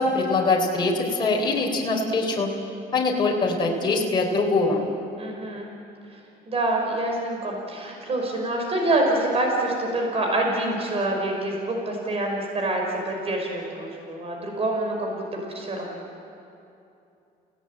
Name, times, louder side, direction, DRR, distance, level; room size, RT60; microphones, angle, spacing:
voice 1, 0.0-2.5 2.9-4.8, left 3 dB, 25° left, -1 dB, 4.0 m, -23 dB
voice 2, 5.2-5.7 6.0-6.2 6.5-16.0, right 1 dB, 35° right, 1 dB, 5.4 m, -26 dB
30.0 x 18.0 x 8.9 m, 2.7 s
cardioid pair, 110°, 17 cm